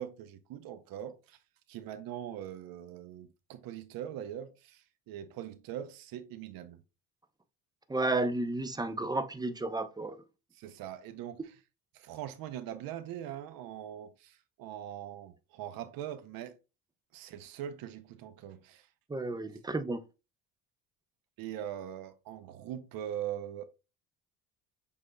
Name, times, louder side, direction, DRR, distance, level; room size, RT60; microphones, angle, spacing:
voice 1, 0.0-1.4 1.7-6.8 10.5-11.5 11.9-16.6 17.1-18.9 21.4-23.6, right 10 dB, 70° right, 0.7 m, -42 dB
voice 2, 7.9-10.2 19.1-20.0, right 2 dB, 10° right, 0.5 m, -32 dB
6.3 x 3.5 x 2.2 m
supercardioid pair, 90°, 36 cm